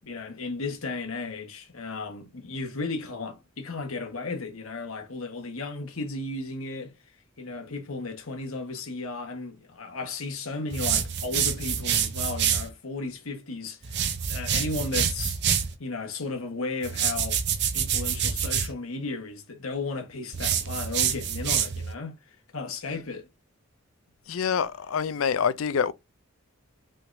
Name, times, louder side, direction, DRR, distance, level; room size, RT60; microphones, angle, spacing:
voice 1, 0.0-6.9 7.4-15.4 15.8-17.4 17.7-23.3, left 3 dB, 90° left, 1.4 m, -35 dB
sound 1, 10.7-12.7 13.8-15.7 16.8-18.7 20.3-21.9, right 8 dB, 55° right, 0.7 m, -27 dB
voice 2, 24.3-25.9, left 7 dB, 75° left, 0.4 m, -26 dB
5.7 x 3.5 x 2.6 m
head